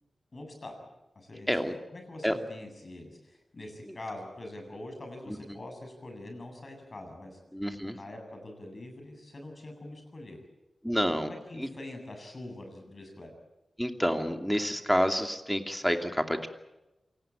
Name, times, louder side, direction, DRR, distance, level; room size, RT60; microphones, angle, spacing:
voice 1, 0.3-0.8 1.1-1.6 1.9-7.4 7.9-10.4 11.2-13.3, left 1 dB, 45° left, 4 dB, 7.7 m, -44 dB
voice 2, 5.3-5.6 7.5-8.0 10.8-11.3 11.6-11.7 13.8-16.5, equal, ahead, 5 dB, 2.6 m, -29 dB
27.5 x 18.5 x 9.0 m, 1.0 s
wide cardioid pair, 80°, 0 cm